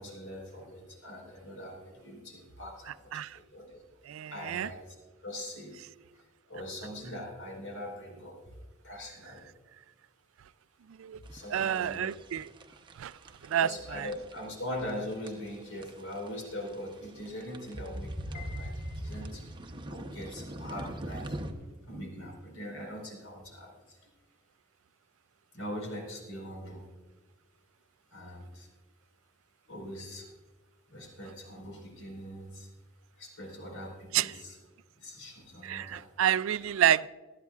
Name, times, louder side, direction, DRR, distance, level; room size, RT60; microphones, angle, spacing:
voice 1, 0.0-3.8 4.3-4.9 5.2-5.8 6.5-8.4 8.8-9.5 11.3-12.1 13.6-19.6 19.9-21.5 21.8-24.0 25.5-26.9 28.1-28.7 29.7-30.3 30.9-32.7 33.2-34.6 35.0-36.1, left 1 dB, 80° left, 4.5 m, -42 dB
voice 2, 4.1-4.7 11.0-11.2 11.5-12.5 13.0-13.1 13.4-14.1 34.1-34.3 35.6-37.1, right 10 dB, 70° right, 0.3 m, -29 dB
sound 1, 11.3-21.5, right 1 dB, 25° right, 0.8 m, -41 dB
Piano, 18.3-19.6, left 6 dB, 50° left, 4.6 m, -51 dB
20.0 x 13.5 x 2.4 m
head